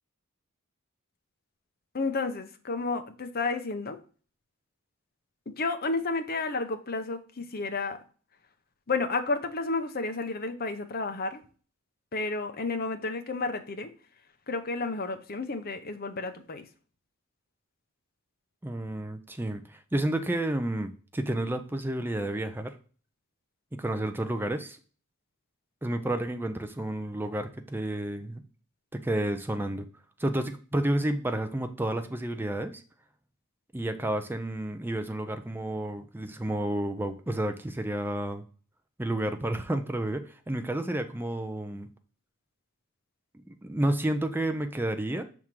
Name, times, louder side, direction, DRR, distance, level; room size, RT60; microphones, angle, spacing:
voice 1, 1.9-4.0 5.5-8.0 8.9-11.4 12.1-13.9 14.5-16.7, left 3 dB, 45° left, 0.8 m, -31 dB
voice 2, 18.6-22.7 23.7-24.8 25.8-28.4 28.9-29.9 30.2-32.8 33.7-38.4 39.0-41.9 43.3-45.2, right 1 dB, 10° right, 0.5 m, -31 dB
6.2 x 3.6 x 4.4 m
head